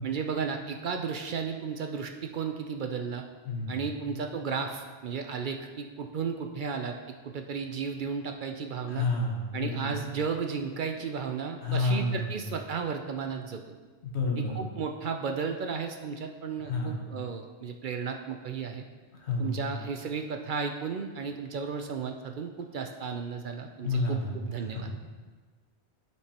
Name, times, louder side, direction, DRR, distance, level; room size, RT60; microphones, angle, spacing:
voice 1, 0.0-3.2 3.7-6.9 7.2-9.1 9.5-13.8 14.4-18.9 19.4-24.9, right 6 dB, 60° right, 4 dB, 0.6 m, -34 dB
voice 2, 3.4-3.8 4.1-4.2 8.9-10.0 11.6-12.4 14.0-14.6 16.6-17.1 19.2-19.7 23.8-24.9, left 2 dB, 85° left, -1 dB, 1.5 m, -30 dB
11.5 x 4.6 x 2.9 m, 1.4 s
omnidirectional pair, 1.1 m